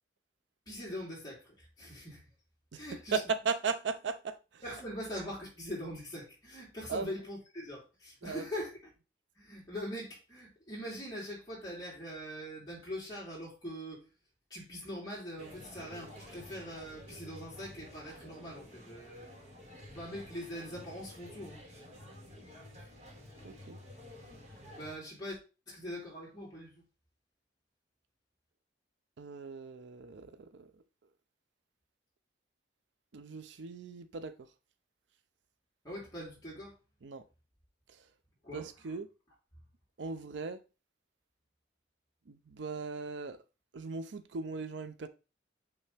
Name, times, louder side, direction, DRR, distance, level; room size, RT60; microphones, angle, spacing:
voice 1, 0.7-2.2 2.7-3.2 4.6-8.7 9.4-14.0 14.5-19.3 19.9-21.6 24.5-25.4 25.7-26.8 35.8-36.7 38.4-38.7, equal, 20° left, 3.0 m, -42 dB
voice 2, 3.1-4.6 6.9-7.1 8.2-8.5 23.4-23.8 29.2-30.7 33.1-34.3 37.0-37.2 38.5-39.1 40.0-40.6 42.3-43.4 43.7-45.1, right 5 dB, 75° right, 0.5 m, -37 dB
sound 1, 15.4-25.0, left 1 dB, 40° right, 2.2 m, -51 dB
8.3 x 3.4 x 3.4 m
head